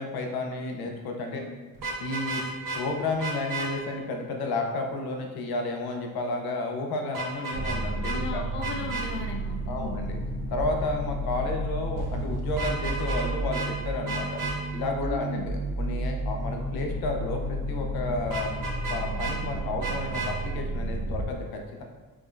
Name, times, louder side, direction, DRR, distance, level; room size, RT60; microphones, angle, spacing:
voice 1, 0.0-1.4 2.0-2.4 2.7-8.4 9.7-10.2 10.5-14.4 14.7-18.5 18.9-21.8, left 2 dB, 85° left, 2 dB, 0.8 m, -32 dB
Vehicle horn car horn honking, 1.7-2.8 3.2-3.7 7.1-7.8 8.0-8.2 8.6-9.1 12.5-13.3 13.5-13.7 14.1-14.5 18.3-19.4 19.8-20.3, right 2 dB, 65° right, 1.1 m, -32 dB
sound 1, 7.5-21.2, right 1 dB, 45° right, 0.6 m, -32 dB
voice 2, 8.1-10.0 15.0-15.5, left 5 dB, 35° left, 3 dB, 0.4 m, -36 dB
sound 2, 12.0-14.9, right 4 dB, 90° right, 0.5 m, -41 dB
5.0 x 3.5 x 2.5 m, 1.3 s
cardioid pair, 145°, 36 cm